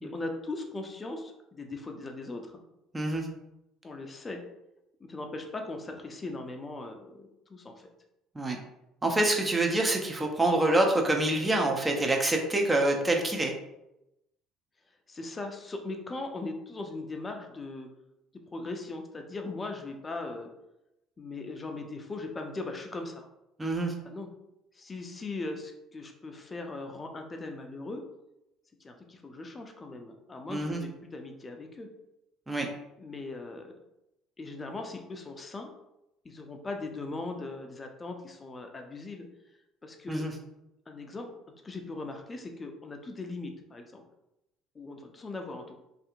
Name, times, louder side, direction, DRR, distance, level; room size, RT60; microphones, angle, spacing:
voice 1, 0.0-2.6 3.8-4.4 5.0-7.9 15.1-17.9 18.5-20.5 21.2-23.3 24.0-24.3 24.7-28.0 28.8-31.9 33.0-33.7 34.4-35.7 36.2-39.3 39.8-40.3 40.9-41.3 41.5-44.0 44.7-45.8, left 2 dB, 30° left, 4 dB, 0.5 m, -39 dB
voice 2, 2.9-3.3 8.4-8.6 9.0-13.5 23.6-23.9 30.5-30.8 32.5-32.7 40.1-40.3, right 2 dB, 20° right, 1 dB, 0.6 m, -26 dB
2.7 x 2.5 x 2.4 m, 0.88 s
hypercardioid pair, 60°, 0 cm